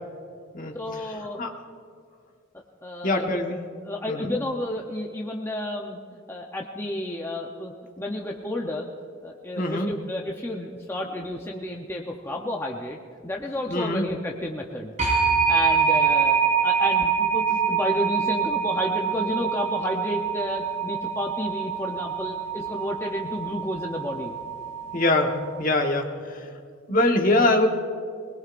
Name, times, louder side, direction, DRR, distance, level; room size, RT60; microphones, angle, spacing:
voice 1, 0.7-1.4 2.8-3.4 3.8-6.0 6.3-8.9 9.2-13.0 13.2-14.9 15.5-16.4 16.6-24.3 27.3-27.5, left 1 dB, 10° left, 0 dB, 0.7 m, -31 dB
voice 2, 3.0-3.6 4.1-4.3 9.6-9.9 13.7-14.1 24.9-26.5 26.9-27.7, left 2 dB, 40° left, 3 dB, 1.3 m, -23 dB
sound 1, 15.0-25.6, right 7 dB, 40° right, 3.7 m, -25 dB
22.0 x 20.5 x 2.5 m, 2.2 s
head